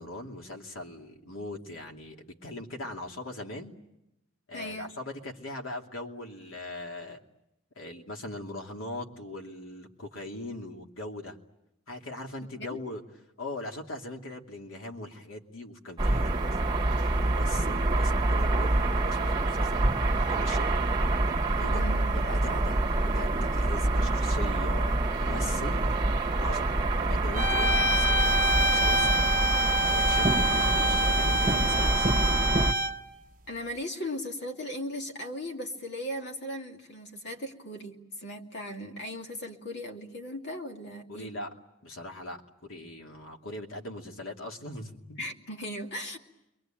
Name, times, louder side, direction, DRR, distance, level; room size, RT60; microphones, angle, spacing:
voice 1, 0.0-3.7 4.5-7.2 7.8-11.4 11.9-13.0 13.4-19.9 20.3-20.7 21.6-25.8 26.4-29.3 29.9-32.3 41.1-41.5 41.8-45.2, left 1 dB, 80° left, 2 dB, 2.7 m, -40 dB
voice 2, 4.5-4.9 12.6-12.8 21.7-22.2 33.5-41.3 45.2-46.2, equal, 55° left, 2 dB, 2.5 m, -37 dB
sound 1, 16.0-32.7, right 2 dB, 20° right, 1.5 m, -26 dB
sound 2, 27.4-33.1, right 1 dB, 40° right, 1.0 m, -26 dB
29.0 x 23.0 x 9.0 m, 0.88 s
head